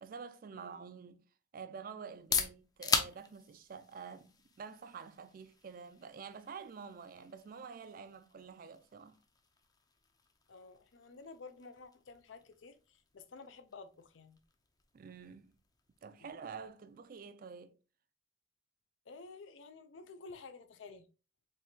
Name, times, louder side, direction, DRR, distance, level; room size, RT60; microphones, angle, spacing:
voice 1, 0.0-1.2 1.5-4.3 4.6-9.2 14.9-15.6 16.0-17.8, right 6 dB, 50° right, 0.3 m, -48 dB
sound 1, 2.0-17.7, left 5 dB, 20° left, 0.5 m, -43 dB
voice 2, 10.5-14.4 16.2-16.3 19.1-21.1, left 4 dB, 80° left, 0.5 m, -52 dB
4.5 x 3.3 x 2.7 m
head